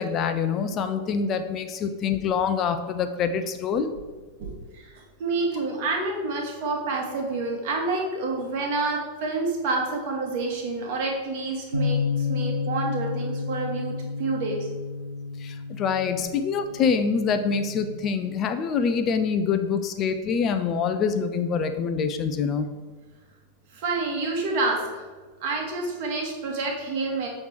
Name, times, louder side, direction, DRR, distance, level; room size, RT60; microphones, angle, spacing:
voice 1, 0.0-3.9 15.4-22.7, left 6 dB, 30° left, 8 dB, 0.4 m, -25 dB
voice 2, 4.4-13.9 14.2-14.7 23.7-25.0 25.4-27.3, right 3 dB, 50° right, 1 dB, 1.3 m, -28 dB
Bass guitar, 11.7-18.0, left 4 dB, 90° right, 0.5 m, -31 dB
6.5 x 3.2 x 4.6 m, 1.3 s
figure-of-eight pair, 90°, 0 cm